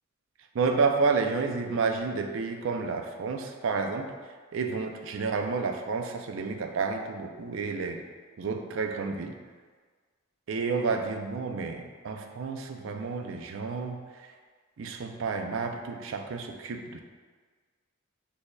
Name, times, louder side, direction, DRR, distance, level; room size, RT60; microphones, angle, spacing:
voice 1, 0.5-4.1 4.5-8.0 8.4-9.3 10.5-14.0 14.8-17.0, right 4 dB, 65° right, 4 dB, 0.4 m, -30 dB
6.4 x 2.7 x 2.2 m, 1.5 s
head